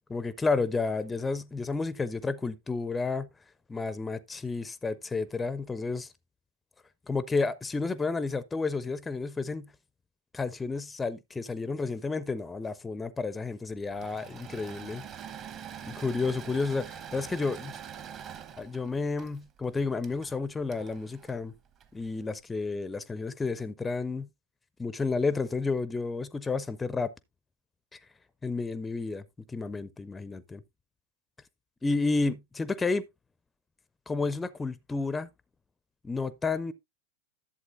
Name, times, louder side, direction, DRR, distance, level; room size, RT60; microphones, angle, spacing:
voice 1, 0.1-3.3 3.7-6.1 7.1-9.7 10.3-15.1 15.8-17.8 18.6-21.5 21.9-24.3 24.8-27.1 27.9-28.0 28.4-29.2 29.5-30.6 31.8-33.0 34.1-35.3 36.0-36.7, left 4 dB, 10° left, 0.4 m, -31 dB
Engine / Mechanisms, 13.8-22.2, right 8 dB, 30° right, 0.9 m, -45 dB
11.0 x 7.6 x 2.5 m
figure-of-eight pair, 90°, 0 cm